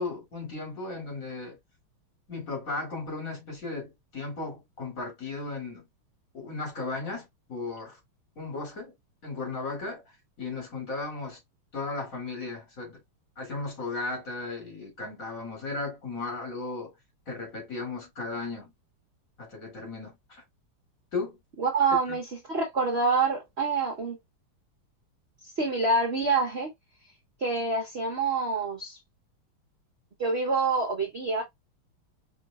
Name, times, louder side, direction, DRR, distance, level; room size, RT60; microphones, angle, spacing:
voice 1, 0.0-1.6 2.3-5.8 6.3-8.0 8.4-8.9 9.2-10.0 10.4-11.4 11.7-13.0 13.4-16.9 17.3-18.7 19.4-20.4 21.1-21.4 21.9-22.2, left 3 dB, 40° left, 3.0 m, -35 dB
voice 2, 21.6-24.2 25.6-26.7 27.4-29.0 30.2-31.4, right 4 dB, 50° right, 0.7 m, -26 dB
5.1 x 3.1 x 2.3 m
omnidirectional pair, 2.3 m